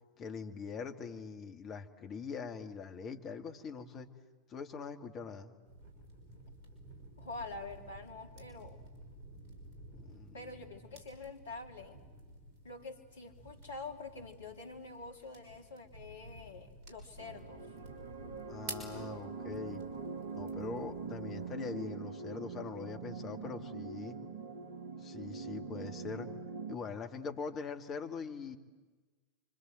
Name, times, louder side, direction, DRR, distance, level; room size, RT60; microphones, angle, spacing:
voice 1, 0.2-4.1 4.5-5.5 9.9-10.7 18.5-19.8 20.3-24.2 25.0-26.3 26.7-28.6, left 5 dB, 30° left, 5 dB, 2.2 m, -43 dB
sound 1, 5.7-21.5, right 2 dB, 45° right, 6.0 m, -52 dB
voice 2, 7.2-8.8 10.3-12.0 12.6-17.7, left 3 dB, 65° left, 4 dB, 2.8 m, -46 dB
sound 2, 17.2-26.8, right 4 dB, 60° right, 1.9 m, -43 dB
30.0 x 25.0 x 8.0 m, 1.3 s
figure-of-eight pair, 90°, 0 cm